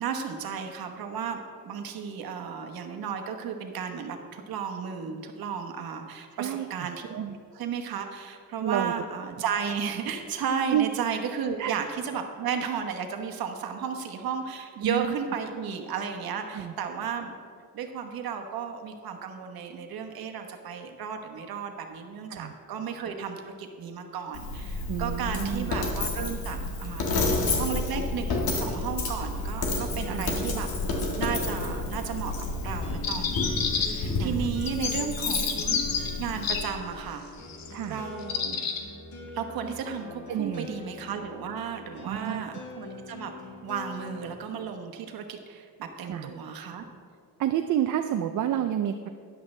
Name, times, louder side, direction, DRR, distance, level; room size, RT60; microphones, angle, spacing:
voice 1, 0.0-7.1 7.5-17.3 17.7-30.7 31.2-37.2 37.9-38.6 39.3-43.3 43.6-46.9, right 7 dB, 80° right, 5 dB, 1.2 m, -34 dB
voice 2, 6.3-7.4 8.6-8.9 10.7-10.9 11.6-11.8 14.8-15.2 16.5-16.7 22.3-22.5 24.9-25.7 30.1-30.3 34.2-34.5 37.7-38.0 40.3-40.7 42.0-42.4 46.1-46.3 47.4-49.1, right 10 dB, 60° right, 7 dB, 0.5 m, -29 dB
Coin (dropping), 24.3-36.6, left 2 dB, 85° left, 1.8 m, -30 dB
sound 1, 29.1-44.4, left 3 dB, 55° left, 1.9 m, -43 dB
sound 2, 33.0-34.1 34.6-36.6 37.4-37.7 38.2-38.8, left 6 dB, 70° left, 1.2 m, -29 dB
13.5 x 10.0 x 3.3 m, 2.3 s
wide cardioid pair, 160°, 36 cm